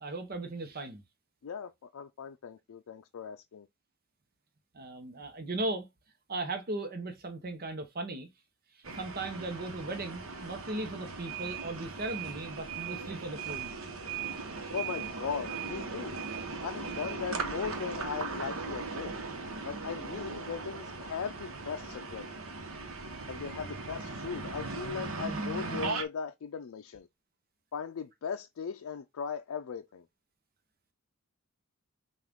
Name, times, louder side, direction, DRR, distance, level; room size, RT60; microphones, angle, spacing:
voice 1, 0.0-1.0 4.7-5.9 6.3-8.3 8.7-13.7, right 2 dB, 45° right, 0.8 m, -37 dB
voice 2, 1.4-3.7 14.7-16.1 16.6-19.1 19.6-22.3 23.3-27.1 27.7-30.0, left 6 dB, 80° left, 0.4 m, -38 dB
sound 1, 8.8-26.1, right 4 dB, 75° right, 1.0 m, -38 dB
5.9 x 2.4 x 3.5 m
head